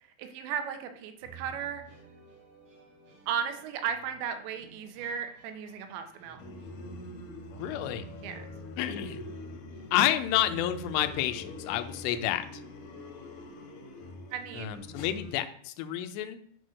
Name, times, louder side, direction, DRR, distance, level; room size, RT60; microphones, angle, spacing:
voice 1, 0.2-1.8 3.3-6.4 8.2-8.5 14.3-14.8, right 8 dB, 75° right, 7 dB, 3.3 m, -35 dB
sound 1, 1.2-12.3, right 7 dB, 35° right, 3.1 m, -52 dB
sound 2, 6.4-15.3, left 2 dB, 65° left, 2.4 m, -44 dB
voice 2, 7.6-8.0 8.8-9.3 9.9-12.6 14.5-16.4, left 12 dB, 80° left, 9 dB, 2.8 m, -30 dB
8.0 x 6.7 x 6.4 m, 0.63 s
omnidirectional pair, 5.3 m